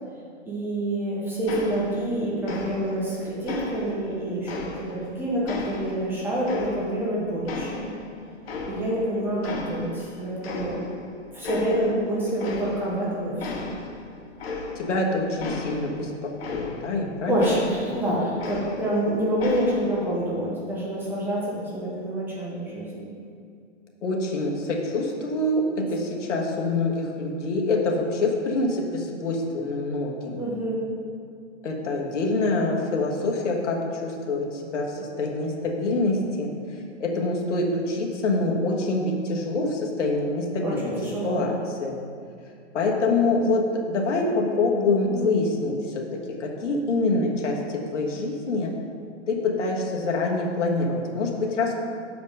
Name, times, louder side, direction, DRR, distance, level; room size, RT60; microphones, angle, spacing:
voice 1, 0.5-4.6 4.9-7.9 8.7-10.8 11.3-13.7 17.3-23.1 30.4-30.8 40.6-41.4 45.1-45.2, right 1 dB, 5° right, -6 dB, 0.7 m, -27 dB
sound 1, 1.5-2.2 2.4-3.1 3.5-5.1 5.5-7.1 7.5-9.1 9.4-10.1 10.4-11.1 11.4-12.0 12.4-13.0 13.4-17.0 17.4-19.0 19.4-20.0, left 3 dB, 55° left, 1.3 m, -35 dB
voice 2, 14.7-17.4 24.0-30.4 31.6-42.0 42.4-48.7 49.3-51.7, left 2 dB, 80° left, 0 dB, 1.5 m, -26 dB
6.9 x 5.1 x 5.3 m, 2.4 s
hypercardioid pair, 155°, 36 cm